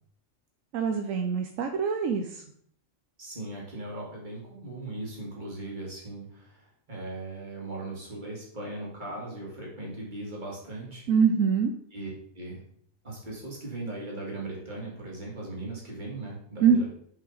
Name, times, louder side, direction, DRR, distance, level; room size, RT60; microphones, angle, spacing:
voice 1, 0.7-2.4 11.1-11.7 16.6-16.9, right 6 dB, 80° right, 4 dB, 1.0 m, -24 dB
voice 2, 3.2-11.0 11.9-12.6 13.0-16.9, right 2 dB, 35° right, -4 dB, 2.2 m, -38 dB
5.8 x 5.2 x 4.0 m, 0.63 s
omnidirectional pair, 1.4 m